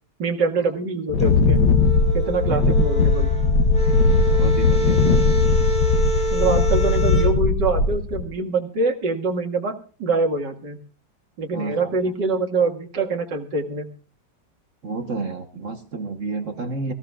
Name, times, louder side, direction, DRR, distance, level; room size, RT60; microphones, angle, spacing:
voice 1, 0.2-1.6 2.1-3.3 6.3-9.7 10.0-10.8 11.4-13.9, right 3 dB, 80° right, 1 dB, 2.6 m, -24 dB
Wind, 1.1-8.3, left 4 dB, 70° left, 1.6 m, -19 dB
sound 1, 1.2-7.3, right 1 dB, 5° left, 4.1 m, -27 dB
voice 2, 2.4-2.7 4.3-5.0 11.5-11.9 14.8-16.9, right 3 dB, 50° right, 6 dB, 1.4 m, -30 dB
24.5 x 14.5 x 2.4 m, 0.39 s
omnidirectional pair, 1.9 m